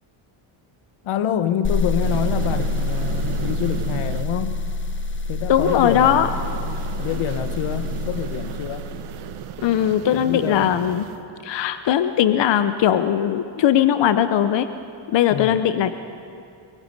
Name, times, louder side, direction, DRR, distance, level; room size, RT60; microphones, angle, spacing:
voice 1, 1.0-4.6 5.3-6.3 7.0-8.9 10.1-10.8 15.3-15.6, left 9 dB, 80° left, 11 dB, 1.1 m, -27 dB
sound 1, 1.6-9.5, left 3 dB, 25° left, 1.1 m, -27 dB
sound 2, 2.0-4.2 5.6-11.1, right 11 dB, 85° right, 1.1 m, -34 dB
voice 2, 5.5-6.3 9.6-11.0 11.4-14.7 15.1-16.0, left 10 dB, 60° left, 11 dB, 0.8 m, -19 dB
23.5 x 22.0 x 5.4 m, 2.5 s
cardioid pair, 105°, 49 cm